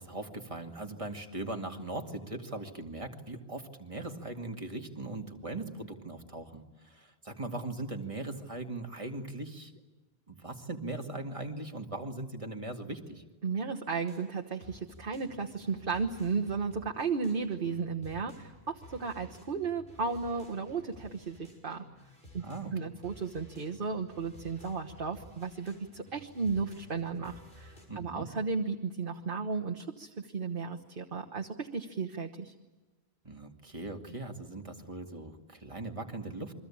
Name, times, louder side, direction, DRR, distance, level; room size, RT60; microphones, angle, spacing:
voice 1, 0.0-9.7 10.3-13.2 22.4-22.7 27.9-28.3 33.2-36.5, right 2 dB, 30° right, 3 dB, 2.2 m, -40 dB
voice 2, 13.4-21.8 22.3-22.4 22.7-32.5, right 5 dB, 60° right, 1 dB, 1.4 m, -34 dB
sound 1, 14.1-22.8 23.0-27.9, equal, 60° left, 7.0 m, -54 dB
28.5 x 23.0 x 8.7 m, 1.2 s
omnidirectional pair, 1.0 m